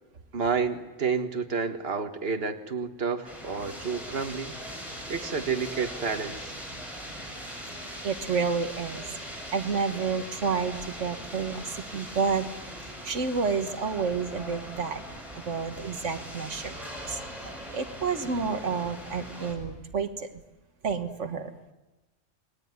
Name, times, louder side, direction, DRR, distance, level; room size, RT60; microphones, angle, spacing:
voice 1, 0.3-4.6 5.1-6.6, right 5 dB, 55° right, 6 dB, 1.8 m, -30 dB
sound 1, 3.2-19.5, equal, ahead, 7.3 m, -40 dB
voice 2, 8.0-12.5 12.8-15.0 15.4-20.4 20.8-21.5, right 5 dB, 85° right, 7 dB, 1.8 m, -30 dB
29.5 x 20.5 x 9.6 m, 1.1 s
omnidirectional pair, 1.2 m